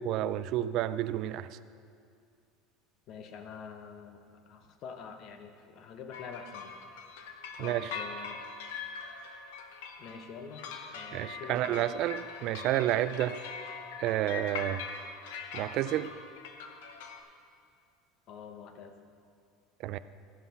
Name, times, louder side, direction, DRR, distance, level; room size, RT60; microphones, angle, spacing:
voice 1, 0.0-1.6 7.6-8.0 11.1-13.4 14.0-14.8 15.5-16.1 19.8-20.0, right 13 dB, 45° right, 14 dB, 0.3 m, -30 dB
voice 2, 3.1-6.8 7.6-8.4 10.0-10.6 10.9-11.8 18.3-19.0, left 6 dB, 40° left, 7 dB, 0.8 m, -46 dB
sound 1, 6.1-17.2, left 5 dB, 90° left, 0.9 m, -42 dB
14.0 x 5.6 x 5.7 m, 2.3 s
cardioid pair, 165°, 0 cm